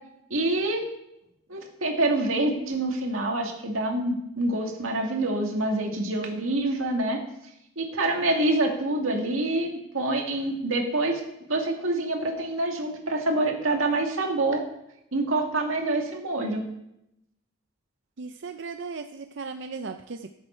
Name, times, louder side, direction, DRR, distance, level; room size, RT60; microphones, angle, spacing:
voice 1, 0.3-0.8 1.5-7.2 7.8-11.2 11.5-14.6 15.1-16.7, right 2 dB, 90° right, 2 dB, 2.0 m, -26 dB
voice 2, 18.2-20.3, right 4 dB, 60° right, 7 dB, 0.5 m, -36 dB
14.5 x 7.4 x 4.5 m, 0.83 s
head